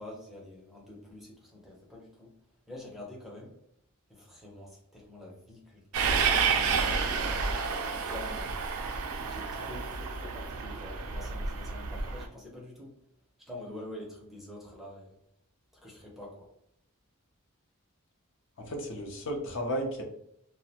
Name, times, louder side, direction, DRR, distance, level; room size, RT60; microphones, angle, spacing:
voice 1, 0.0-2.3 2.7-3.5 4.1-7.5 7.9-8.6 9.3-12.9 13.4-15.2 15.8-16.5, left 1 dB, ahead, -4 dB, 0.5 m, -46 dB
Train, 5.9-12.2, right 5 dB, 70° right, 0.4 m, -30 dB
voice 2, 18.6-20.0, equal, 60° left, 2 dB, 0.5 m, -33 dB
2.5 x 2.1 x 2.7 m, 0.74 s
head